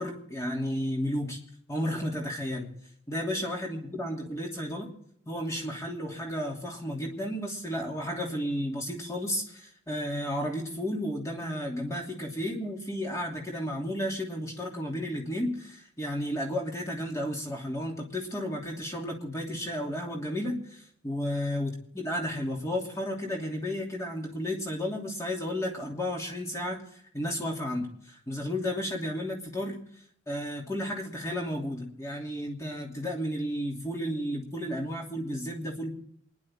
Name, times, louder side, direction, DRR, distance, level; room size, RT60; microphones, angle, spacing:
voice 1, 0.0-1.4 1.7-2.8 3.1-4.9 5.3-26.8 27.1-29.8 30.3-35.9, equal, 15° left, -1 dB, 2.9 m, -33 dB
27.5 x 10.5 x 3.7 m, 0.68 s
head